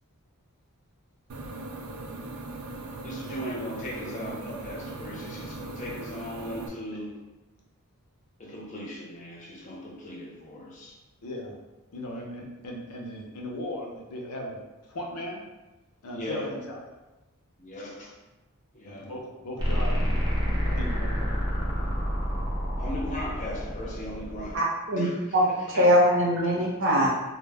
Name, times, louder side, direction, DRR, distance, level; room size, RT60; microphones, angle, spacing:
sound 1, 1.3-6.7, right 2 dB, 75° right, 0.3 m, -39 dB
voice 1, 3.0-7.2 8.4-11.0 16.1-16.5 17.6-18.2 18.7-19.1 22.8-24.6 24.9-25.2 25.7-25.8, left 1 dB, 35° left, -3 dB, 0.5 m, -38 dB
voice 2, 11.2-11.6 11.9-14.6 14.9-15.4 16.0-16.8 18.8-20.3 20.6-21.3, left 1 dB, 85° left, 0 dB, 0.5 m, -37 dB
sound 2, 19.6-24.6, equal, 20° right, 0.6 m, -28 dB
voice 3, 24.5-25.1 25.3-27.1, equal, 60° right, -4 dB, 0.7 m, -22 dB
2.1 x 2.0 x 3.3 m, 1.1 s
head